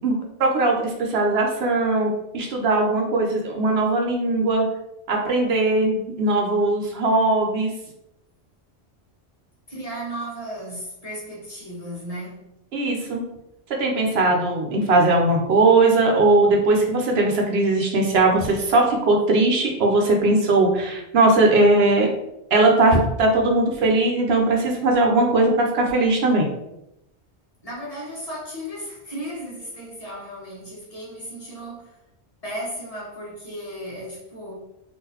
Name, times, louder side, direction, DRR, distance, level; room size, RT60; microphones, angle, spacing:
voice 1, 0.0-4.7 5.1-7.7 12.7-13.2 13.8-22.1 22.5-26.5, right 2 dB, 70° right, 1 dB, 0.9 m, -19 dB
voice 2, 9.7-12.4 27.6-32.0 32.4-34.6, equal, 35° left, -6 dB, 1.1 m, -35 dB
3.7 x 2.6 x 2.8 m, 0.85 s
omnidirectional pair, 1.1 m